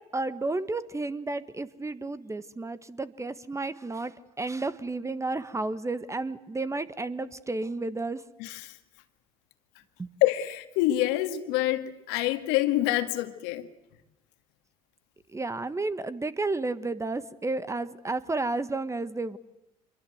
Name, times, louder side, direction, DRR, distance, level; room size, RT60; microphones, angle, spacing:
voice 1, 0.0-8.2 10.0-10.1 15.3-19.4, right 3 dB, 15° right, 14 dB, 1.3 m, -32 dB
voice 2, 8.4-8.8 10.2-13.7, left 15 dB, 70° left, 9 dB, 2.0 m, -26 dB
25.5 x 23.0 x 8.0 m, 0.93 s
hypercardioid pair, 70°, 18 cm